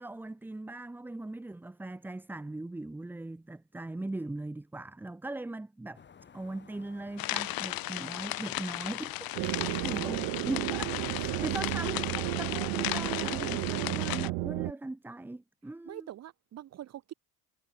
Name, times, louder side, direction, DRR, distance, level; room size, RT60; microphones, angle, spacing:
voice 1, 0.0-6.0 6.3-9.1 9.8-10.2 10.4-16.1, right 2 dB, 5° right, 0.6 m, -39 dB
sound 1, 5.9-14.1, left 7 dB, 25° left, 2.2 m, -55 dB
sound 2, 7.2-14.3, left 17 dB, 55° left, 1.6 m, -36 dB
sound 3, 9.3-14.7, right 28 dB, 60° right, 0.5 m, -33 dB
voice 2, 9.4-10.0 11.3-11.6 15.8-17.1, right 12 dB, 40° right, 1.1 m, -44 dB
supercardioid pair, 115°, 41 cm